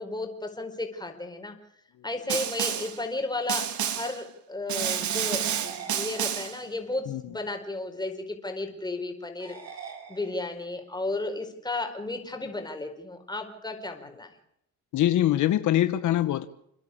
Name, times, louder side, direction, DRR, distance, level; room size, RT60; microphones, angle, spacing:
voice 1, 0.0-1.5 2.0-14.3, left 2 dB, 15° left, 4 dB, 4.6 m, -34 dB
Snare drum, 2.3-3.0 3.5-4.2 4.7-6.6, right 9 dB, 70° right, 2.0 m, -29 dB
sound 1, 5.4-6.8 9.4-10.8, right 6 dB, 55° right, 3.9 m, -44 dB
voice 2, 14.9-16.4, left 13 dB, 75° left, 12 dB, 1.0 m, -23 dB
29.5 x 10.5 x 8.6 m, 0.77 s
cardioid pair, 90°, 30 cm